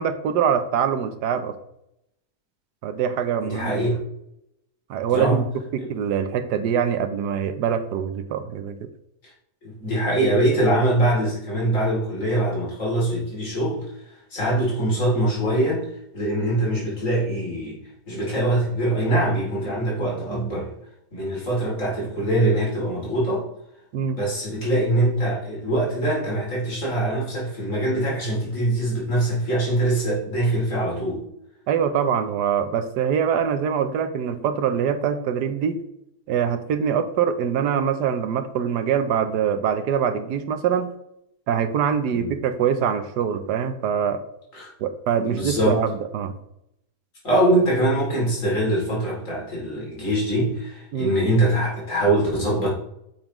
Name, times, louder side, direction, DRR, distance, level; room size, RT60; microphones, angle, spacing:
voice 1, 0.0-1.5 2.8-3.9 4.9-5.5 5.7-8.8 23.9-24.2 31.7-35.8 36.3-40.9 41.5-44.2 44.8-46.3 50.9-51.2, right 8 dB, 85° right, 9 dB, 1.3 m, -24 dB
voice 2, 3.4-4.0 5.1-5.4 5.8-5.9 9.6-13.8 14.3-17.8 18.1-20.7 21.1-23.4 24.1-31.2 42.1-42.4 44.5-44.7 45.2-45.9 47.2-52.7, right 1 dB, 50° left, -4 dB, 3.3 m, -23 dB
8.8 x 6.0 x 3.1 m, 0.79 s
omnidirectional pair, 1.7 m